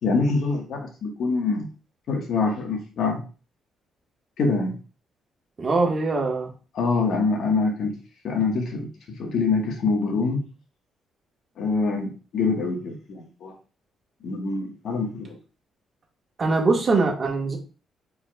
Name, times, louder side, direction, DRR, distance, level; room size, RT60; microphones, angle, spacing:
voice 1, 0.0-1.7 2.1-3.2 4.4-4.8 6.7-8.0 8.2-10.4 11.6-13.5 14.2-15.4, left 4 dB, 70° left, 2 dB, 1.4 m, -25 dB
voice 2, 5.6-6.5 16.4-17.6, right 3 dB, 35° right, 1 dB, 1.5 m, -22 dB
5.0 x 3.9 x 2.3 m, 0.35 s
cardioid pair, 90°, 0 cm